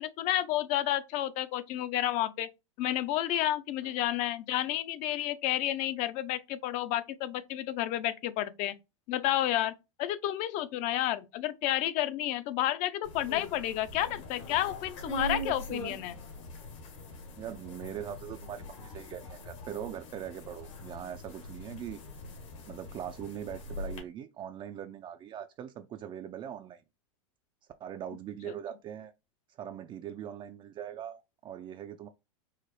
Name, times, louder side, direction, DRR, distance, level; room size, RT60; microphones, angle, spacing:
voice 1, 0.0-2.5 2.8-8.8 9.1-9.7 10.0-16.2 28.4-28.5, left 13 dB, 45° left, 0.5 m, -31 dB
sound 1, 13.0-24.0, left 1 dB, 70° left, 1.4 m, -42 dB
voice 2, 17.4-22.0 22.7-26.8 27.8-29.1 29.6-32.1, right 10 dB, 30° right, 0.3 m, -41 dB
4.7 x 2.0 x 3.0 m
hypercardioid pair, 105°, 17 cm